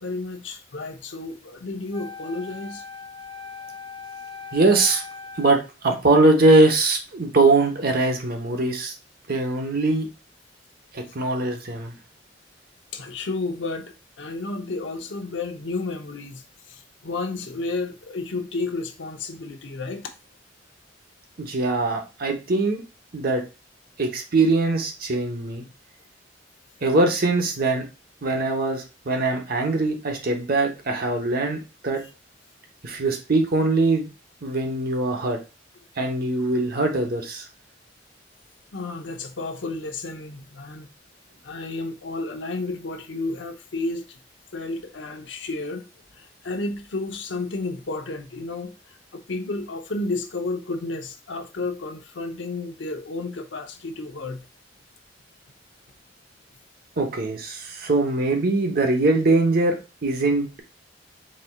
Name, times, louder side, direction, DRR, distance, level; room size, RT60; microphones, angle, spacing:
voice 1, 0.0-2.8 12.9-20.1 38.7-40.9 41.4-44.2 44.5-54.5, left 3 dB, 90° left, 0.7 m, -32 dB
Wind instrument woodwind instrument, 1.9-5.7, left 4 dB, 25° left, 0.5 m, -40 dB
voice 2, 4.5-5.0 5.4-8.9 9.3-10.1 10.9-12.0 21.4-22.8 23.1-23.4 24.0-25.7 26.8-27.8 28.2-31.6 31.8-32.0 32.8-34.1 34.4-35.4 36.0-37.5 57.0-60.6, right 2 dB, 55° right, 0.9 m, -22 dB
4.2 x 3.9 x 2.3 m
head